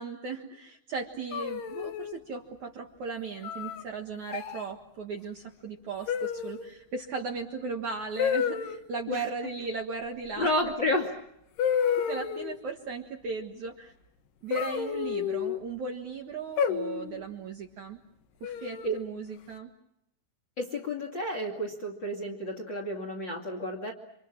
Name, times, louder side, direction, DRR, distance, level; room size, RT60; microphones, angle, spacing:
voice 1, 0.0-10.7 12.1-13.9 14.4-18.0 18.4-19.7, right 4 dB, 55° right, 3 dB, 2.3 m, -37 dB
sound 1, 1.3-2.2 3.4-3.8 4.3-4.6 6.1-6.7 8.2-8.8 10.7-10.8 11.6-12.6 14.5-15.6 16.6-17.2 18.4-19.0, left 8 dB, 70° left, 3.4 m, -30 dB
voice 2, 10.4-11.1 18.8-19.0 20.6-23.9, left 1 dB, 35° left, 2 dB, 2.3 m, -30 dB
28.0 x 26.0 x 7.4 m, 0.80 s
omnidirectional pair, 5.2 m